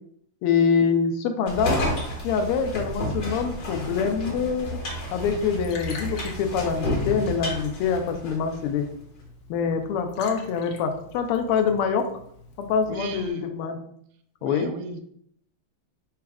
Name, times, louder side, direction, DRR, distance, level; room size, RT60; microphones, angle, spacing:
voice 1, 0.4-1.8 2.2-4.7 5.1-8.8 9.5-12.0 12.6-13.8 14.4-14.7, left 6 dB, 85° left, 6 dB, 1.5 m, -25 dB
sound 1, 1.5-8.7, equal, 50° left, 1.7 m, -31 dB
Liquid, 5.2-13.3, left 2 dB, 65° left, 0.9 m, -46 dB
voice 2, 12.9-13.4 13.7-13.8 14.4-15.0, right 3 dB, 85° right, 7 dB, 1.5 m, -35 dB
4.2 x 2.3 x 4.7 m, 0.68 s
omnidirectional pair, 2.4 m